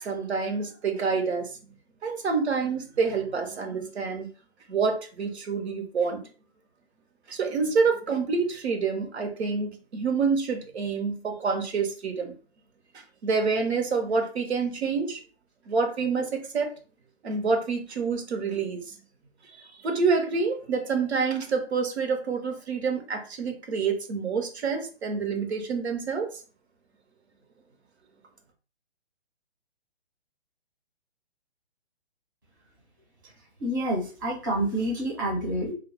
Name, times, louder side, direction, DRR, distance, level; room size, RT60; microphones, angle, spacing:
voice 1, 0.0-1.7 2.0-4.3 4.7-6.2 7.3-12.3 12.9-15.2 15.7-16.7 17.2-19.0 19.6-26.4, right 5 dB, 90° right, 4 dB, 0.8 m, -27 dB
voice 2, 33.6-35.7, right 1 dB, 20° right, -4 dB, 0.4 m, -28 dB
2.2 x 2.1 x 2.8 m, 0.37 s
hypercardioid pair, 165°, 32 cm